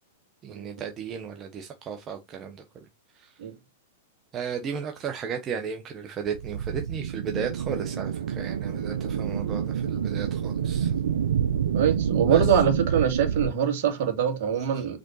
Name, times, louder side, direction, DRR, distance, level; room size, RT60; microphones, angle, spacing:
voice 1, 0.4-2.9 3.1-3.4 4.3-10.9 12.3-12.5 14.7-14.8, right 7 dB, 30° right, 1.2 m, -35 dB
sound 1, 6.3-13.5, right 8 dB, 80° right, 0.6 m, -28 dB
voice 2, 11.7-15.0, right 8 dB, 60° right, 2.5 m, -23 dB
5.1 x 4.3 x 4.7 m
hypercardioid pair, 125°, 0 cm